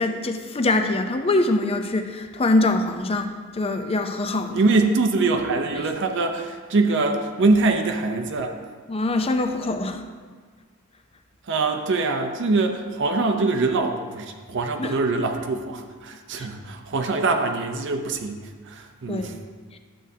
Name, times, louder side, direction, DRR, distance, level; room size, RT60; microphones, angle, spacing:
voice 1, 0.0-4.6 8.9-10.0 14.8-14.9 16.4-16.5 19.1-19.3, left 2 dB, 25° left, 6 dB, 0.5 m, -23 dB
voice 2, 4.5-8.6 11.5-19.4, right 3 dB, 60° right, 4 dB, 0.6 m, -23 dB
11.0 x 7.5 x 2.7 m, 1.5 s
head